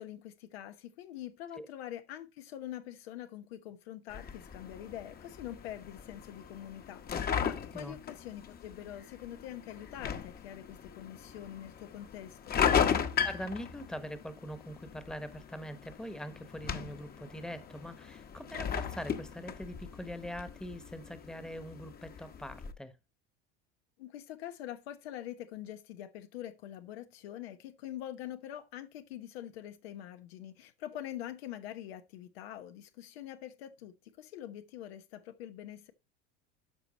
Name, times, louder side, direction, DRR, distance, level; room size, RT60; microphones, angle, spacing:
voice 1, 0.0-12.6 24.0-35.9, left 12 dB, 90° left, 1.0 m, -44 dB
sound 1, 4.1-22.7, left 7 dB, 30° left, 1.0 m, -37 dB
voice 2, 13.2-22.9, equal, ahead, 1.1 m, -43 dB
12.5 x 4.5 x 4.1 m
supercardioid pair, 120°, 30 cm